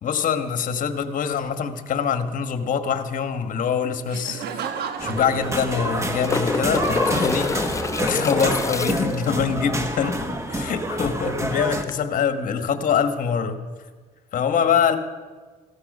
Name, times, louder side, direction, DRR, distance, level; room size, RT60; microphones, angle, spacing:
voice 1, 0.0-13.6 14.3-15.0, left 7 dB, 55° left, 7 dB, 1.4 m, -24 dB
sound 1, 4.1-4.2 4.4-4.5 5.6-9.3 11.8-11.9, left 4 dB, 20° left, 0.6 m, -27 dB
Laughter, 4.1-8.0, right 7 dB, 70° right, 1.3 m, -35 dB
sound 2, 5.0-11.8, right 1 dB, 15° right, 1.4 m, -27 dB
15.5 x 13.0 x 5.4 m, 1.4 s
cardioid pair, 100°, 17 cm